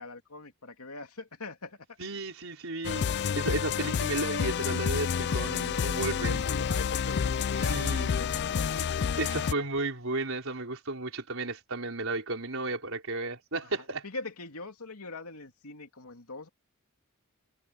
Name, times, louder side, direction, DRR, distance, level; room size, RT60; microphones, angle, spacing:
voice 1, 0.0-1.8 6.3-9.6 14.0-16.5, left 3 dB, 85° left, 2.7 m, -42 dB
voice 2, 2.0-6.4 7.5-8.2 9.2-14.1, right 2 dB, 65° right, 5.1 m, -33 dB
sound 1, 2.8-9.5, left 7 dB, 50° left, 0.4 m, -29 dB
head